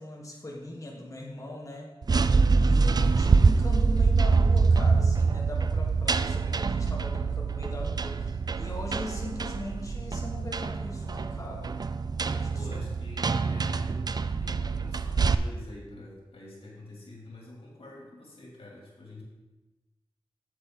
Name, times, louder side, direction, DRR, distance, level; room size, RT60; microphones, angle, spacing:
voice 1, 0.0-1.9 2.6-11.8 12.0-12.7 13.4-13.6, left 1 dB, 35° left, -1 dB, 1.3 m, -40 dB
sound 1, 2.0-15.3, right 4 dB, 45° right, 0.3 m, -25 dB
voice 2, 12.5-14.0 14.4-19.2, left 2 dB, 90° left, -3 dB, 2.6 m, -46 dB
7.9 x 7.7 x 3.7 m, 1.1 s
wide cardioid pair, 80°, 9 cm